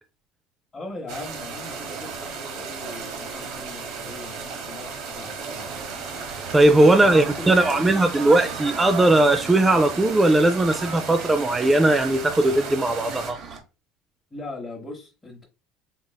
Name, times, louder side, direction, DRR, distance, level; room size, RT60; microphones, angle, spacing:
voice 1, 0.7-5.8 6.8-7.6 14.3-15.5, left 2 dB, 20° left, 1.0 m, -39 dB
sound 1, 1.1-13.3, right 5 dB, 65° right, 1.1 m, -35 dB
sound 2, 5.6-13.6, right 5 dB, 45° right, 0.9 m, -38 dB
voice 2, 6.5-13.4, right 2 dB, 15° right, 0.4 m, -18 dB
3.9 x 3.0 x 2.2 m
supercardioid pair, 95°, 0 cm